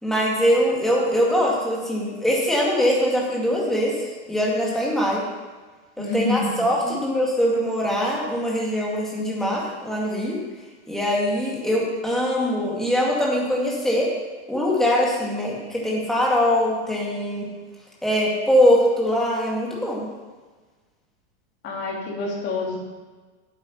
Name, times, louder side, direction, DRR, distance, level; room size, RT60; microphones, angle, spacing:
voice 1, 0.0-5.3 6.0-10.4 10.9-14.1 14.5-17.5 18.0-20.1, equal, ahead, -4 dB, 2.1 m, -22 dB
voice 2, 6.0-6.6 6.8-6.9 21.6-22.8, left 3 dB, 30° left, -2 dB, 2.6 m, -27 dB
9.0 x 8.0 x 5.9 m, 1.4 s
supercardioid pair, 155°, 35 cm